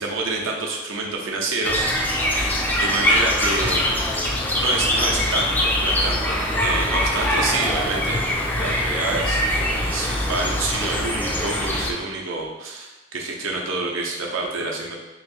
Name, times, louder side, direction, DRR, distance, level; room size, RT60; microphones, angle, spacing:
voice 1, 0.0-1.9 2.8-6.3 6.6-8.3 8.6-15.0, right 3 dB, 75° right, -1 dB, 0.7 m, -27 dB
sound 1, 1.6-11.9, left 1 dB, 10° left, 0.4 m, -23 dB
2.9 x 2.6 x 4.1 m, 1.1 s
head